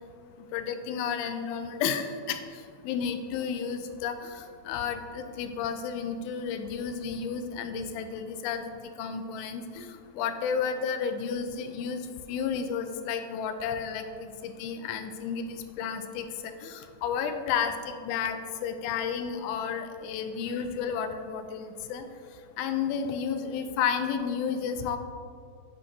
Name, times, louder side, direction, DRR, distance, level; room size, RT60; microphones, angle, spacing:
voice 1, 0.5-2.4 2.8-4.1 4.7-8.7 9.0-9.8 10.2-12.0 12.3-16.3 16.6-17.7 18.0-22.0 22.6-25.0, left 7 dB, 90° left, 8 dB, 2.4 m, -32 dB
7.6 x 7.3 x 2.8 m, 2.3 s
omnidirectional pair, 4.1 m